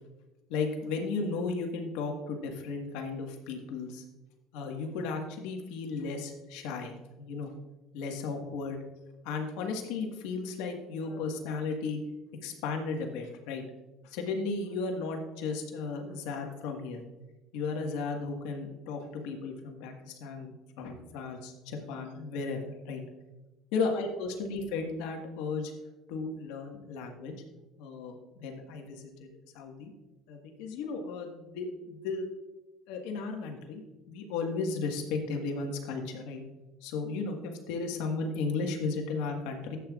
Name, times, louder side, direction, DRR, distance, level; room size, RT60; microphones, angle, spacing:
voice 1, 0.5-4.0 4.5-7.5 7.9-8.8 9.2-12.0 12.4-13.6 14.0-17.0 17.5-23.0 23.7-25.7 26.1-27.3 27.8-29.9 30.3-32.2 32.9-36.4 36.8-39.8, left 4 dB, 80° left, 3 dB, 1.6 m, -35 dB
13.0 x 8.6 x 2.5 m, 1.1 s
supercardioid pair, 115°, 0 cm